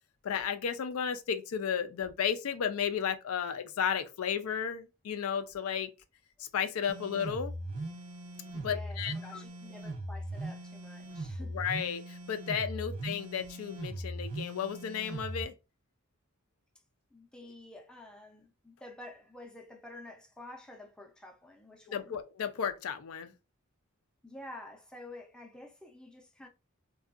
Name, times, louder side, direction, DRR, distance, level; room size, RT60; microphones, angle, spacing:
voice 1, 0.2-5.9 6.4-7.5 8.6-9.4 11.5-15.5 21.9-23.3, left 7 dB, 90° left, 0.4 m, -33 dB
sound 1, 6.9-15.4, right 1 dB, 90° right, 0.5 m, -40 dB
voice 2, 8.5-11.6 17.1-22.2 24.2-26.5, left 1 dB, 5° left, 0.4 m, -49 dB
2.6 x 2.3 x 2.4 m
head